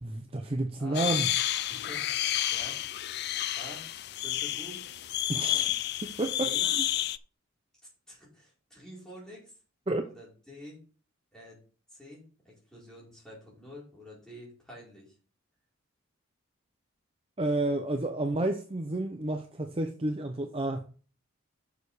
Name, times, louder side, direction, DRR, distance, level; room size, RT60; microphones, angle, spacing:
voice 1, 0.0-1.3 5.3-5.7 6.0-6.8 9.9-10.0 17.4-20.9, right 2 dB, 25° right, 0.6 m, -31 dB
voice 2, 0.8-1.1 1.7-2.8 3.5-3.9 4.1-4.8 6.4-6.7 8.1-9.5 10.0-10.8 11.3-11.6 11.9-15.1, equal, 5° left, 4.5 m, -48 dB
sound 1, 0.9-7.2, left 13 dB, 50° left, 0.4 m, -30 dB
7.0 x 6.8 x 4.9 m
head